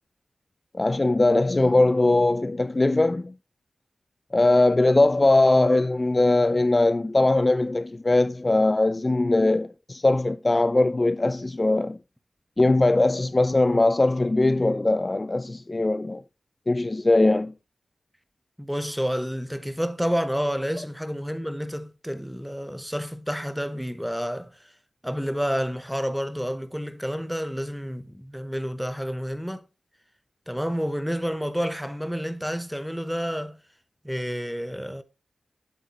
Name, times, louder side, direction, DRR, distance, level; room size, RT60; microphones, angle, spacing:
voice 1, 0.7-3.3 4.3-12.0 12.6-16.2 16.7-17.5, left 2 dB, 30° left, 0.3 m, -21 dB
voice 2, 18.6-24.7 25.0-29.6 30.5-33.6 34.0-35.0, equal, ahead, 0.8 m, -29 dB
8.1 x 7.6 x 2.9 m
cardioid pair, 60°, 0 cm